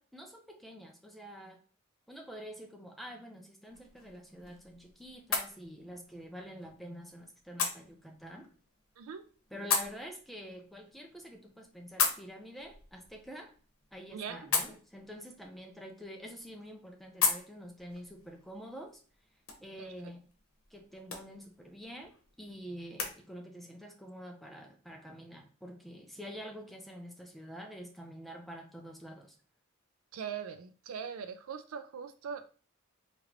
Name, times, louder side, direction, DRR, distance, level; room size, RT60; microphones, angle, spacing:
voice 1, 0.0-1.6 2.1-8.5 9.5-13.5 13.9-19.0 19.6-20.2 20.7-22.1 22.4-29.4, equal, ahead, 3 dB, 0.5 m, -47 dB
sound 1, 3.7-23.1, left 5 dB, 75° left, 0.9 m, -39 dB
voice 2, 30.1-32.5, right 7 dB, 80° right, 8 dB, 0.4 m, -41 dB
3.7 x 2.9 x 2.9 m, 0.40 s
head